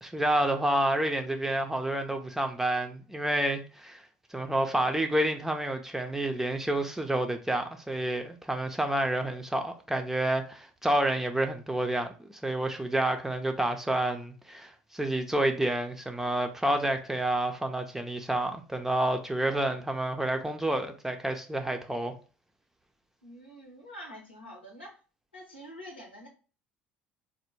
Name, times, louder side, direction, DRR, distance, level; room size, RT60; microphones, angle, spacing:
voice 1, 0.0-4.0 4.3-22.1, right 1 dB, 5° right, 0.5 m, -29 dB
voice 2, 23.2-25.0 25.3-26.3, equal, 90° left, 0.9 m, -46 dB
3.2 x 2.1 x 3.0 m
figure-of-eight pair, 65°, 5 cm